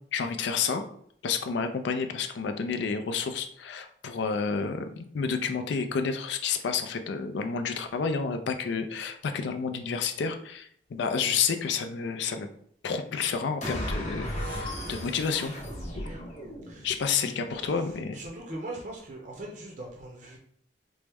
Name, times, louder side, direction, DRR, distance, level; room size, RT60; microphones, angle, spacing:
voice 1, 0.1-0.8 1.2-12.5 12.8-15.5 16.0-16.1 16.8-18.2, left 5 dB, 70° left, 7 dB, 0.4 m, -30 dB
sound 1, 13.6-17.0, equal, 40° left, 0.8 m, -35 dB
voice 2, 16.7-20.4, right 1 dB, 40° right, -1 dB, 0.6 m, -42 dB
4.4 x 2.0 x 3.4 m, 0.65 s
head